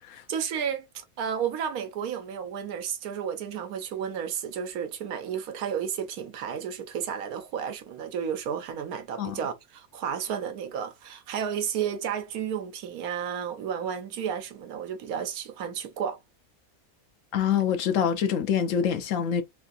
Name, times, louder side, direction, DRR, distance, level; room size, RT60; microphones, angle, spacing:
voice 1, 0.3-16.2, right 8 dB, 90° right, 1.2 m, -32 dB
voice 2, 17.3-19.4, left 8 dB, 70° left, 0.9 m, -25 dB
3.2 x 2.6 x 2.3 m
omnidirectional pair, 1.5 m